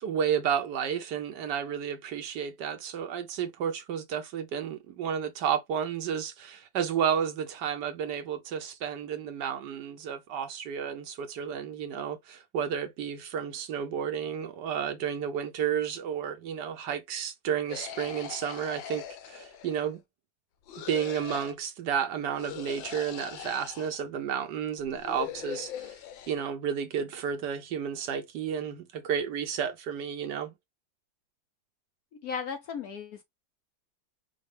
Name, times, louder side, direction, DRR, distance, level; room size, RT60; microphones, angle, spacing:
voice 1, 0.0-20.0 20.8-26.0 26.3-30.5, right 8 dB, 70° right, 1.2 m, -32 dB
sound 1, 17.7-20.0 20.7-21.5 22.4-24.0 24.8-26.4, left 9 dB, 80° left, 1.5 m, -41 dB
voice 2, 32.1-33.2, left 6 dB, 60° left, 1.0 m, -36 dB
5.2 x 2.3 x 3.2 m
omnidirectional pair, 2.1 m